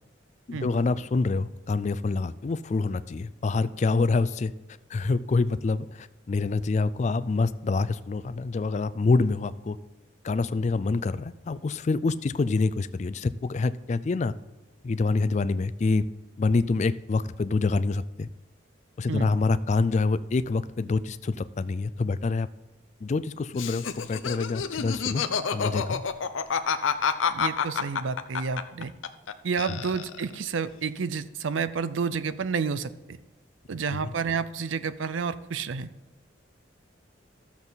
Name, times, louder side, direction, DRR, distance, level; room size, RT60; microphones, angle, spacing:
voice 1, 0.5-4.5 4.9-9.8 10.2-14.3 14.8-16.1 16.4-18.3 19.0-22.5 23.0-25.2 25.5-26.0 29.7-29.8 33.9-34.1, left 3 dB, 35° left, 15 dB, 0.3 m, -26 dB
Laughter, 23.5-29.3 29.6-30.4, left 6 dB, 90° left, 0.6 m, -28 dB
voice 2, 27.3-28.9 29.4-32.9 33.7-35.9, right 5 dB, 85° right, 14 dB, 0.5 m, -30 dB
12.5 x 7.2 x 4.0 m, 1.1 s
head